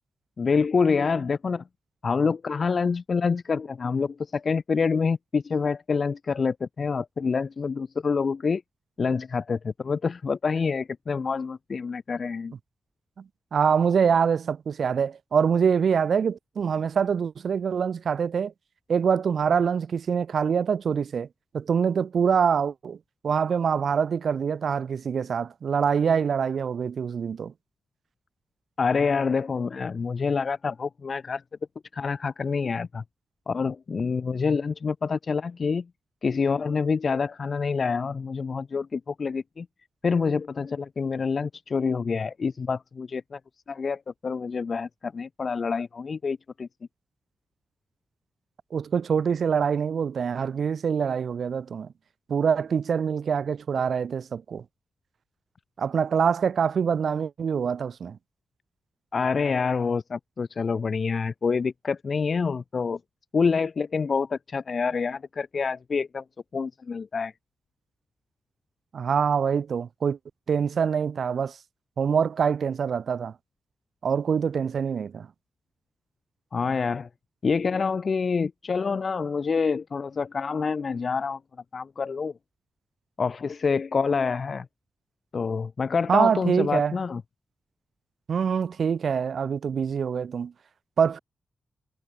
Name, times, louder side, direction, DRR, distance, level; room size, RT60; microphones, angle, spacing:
voice 1, 0.4-1.6 2.0-8.6 9.0-12.5 28.8-31.4 31.9-33.0 33.5-35.9 36.2-39.7 40.0-43.4 43.7-46.7 59.1-63.0 63.3-66.2 66.5-67.3 76.5-77.1 77.4-81.4 81.7-82.3 83.2-84.7 85.3-87.2, left 5 dB, 55° left, 0.4 m, -27 dB
voice 2, 13.5-18.5 18.9-21.3 21.5-23.0 23.2-27.5 48.7-51.9 52.3-54.6 55.8-58.2 68.9-70.2 70.5-71.6 72.0-73.3 74.0-75.3 86.1-87.0 88.3-90.5 91.0-91.2, right 7 dB, 70° right, 0.4 m, -25 dB
cardioid pair, 75°, 0 cm